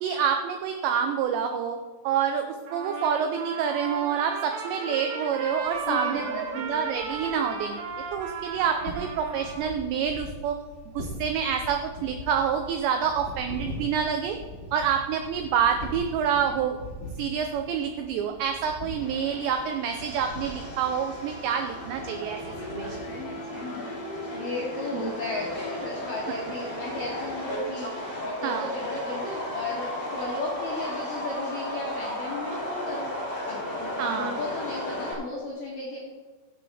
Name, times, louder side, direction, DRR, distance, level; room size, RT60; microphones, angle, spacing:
voice 1, 0.0-1.8 2.0-2.5 2.7-7.8 8.1-10.6 11.0-14.4 14.7-16.8 17.2-22.4 22.8-23.0 28.4-28.7 34.0-34.4, right 7 dB, 90° right, 5 dB, 2.4 m, -27 dB
Trumpet, 2.7-9.8, right 4 dB, 70° right, 2.2 m, -35 dB
sound 1, 5.5-23.2, left 1 dB, 50° left, 2.2 m, -42 dB
voice 2, 5.8-6.6 23.2-27.9 28.2-33.1 33.4-36.0, left 3 dB, 75° left, -4 dB, 2.0 m, -35 dB
Subway metro underground, 19.0-35.1, left 1 dB, 30° left, 2.8 m, -35 dB
16.0 x 7.9 x 3.5 m, 1.3 s
omnidirectional pair, 5.8 m